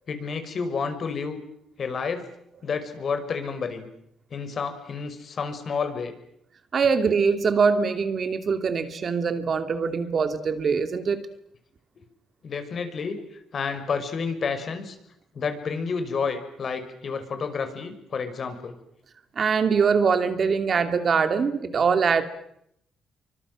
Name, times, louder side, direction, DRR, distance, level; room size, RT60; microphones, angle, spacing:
voice 1, 0.1-1.4 1.8-2.2 2.6-3.9 4.3-6.1 12.4-13.2 13.5-15.0 15.3-18.8, left 5 dB, 50° left, 8 dB, 5.7 m, -30 dB
voice 2, 6.7-11.2 19.4-22.2, right 5 dB, 45° right, 9 dB, 2.8 m, -23 dB
28.0 x 24.5 x 7.7 m, 0.76 s
cardioid pair, 90°, 0 cm